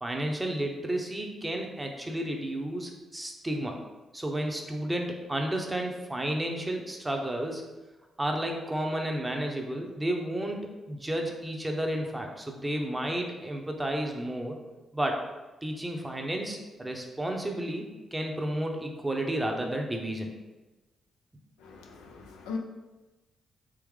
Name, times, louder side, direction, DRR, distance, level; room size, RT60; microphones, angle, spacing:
voice 1, 0.0-3.8 4.1-7.6 8.2-14.5 14.9-15.2 15.6-20.3, right 1 dB, 15° right, 2 dB, 0.7 m, -32 dB
voice 2, 21.6-22.6, left 5 dB, 90° left, 1 dB, 0.4 m, -39 dB
3.7 x 3.0 x 3.2 m, 1.1 s
supercardioid pair, 55°, 0 cm